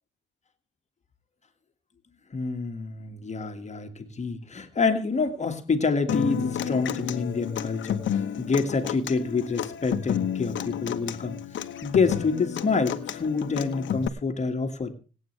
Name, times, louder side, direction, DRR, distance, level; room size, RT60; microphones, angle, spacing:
voice 1, 2.3-8.0 8.4-11.4 11.8-14.9, left 4 dB, 35° left, 6 dB, 1.9 m, -27 dB
Human voice / Acoustic guitar, 6.1-14.1, left 9 dB, 70° left, 1.2 m, -31 dB
25.5 x 8.8 x 3.3 m, 0.37 s
cardioid pair, 90°, 20 cm